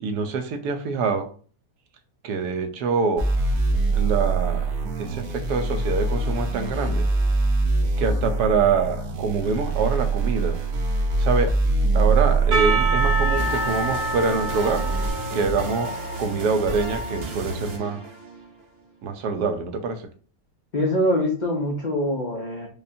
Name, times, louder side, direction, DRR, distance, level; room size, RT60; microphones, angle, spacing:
voice 1, 0.0-1.3 2.2-3.3 3.9-4.7 5.0-7.1 8.0-10.6 11.2-11.5 11.9-14.9 15.3-15.9 16.2-18.0 19.0-20.0, right 4 dB, 90° right, 7 dB, 1.2 m, -25 dB
sound 1, 3.2-15.1, right 3 dB, 70° right, 1.2 m, -23 dB
Percussion / Church bell, 12.5-17.5, right 1 dB, 35° right, 1.1 m, -28 dB
sound 2, 13.4-18.6, right 1 dB, 55° right, 0.7 m, -33 dB
voice 2, 20.7-22.7, left 1 dB, 85° left, 0 dB, 0.4 m, -24 dB
5.0 x 2.2 x 2.6 m, 0.42 s
omnidirectional pair, 1.6 m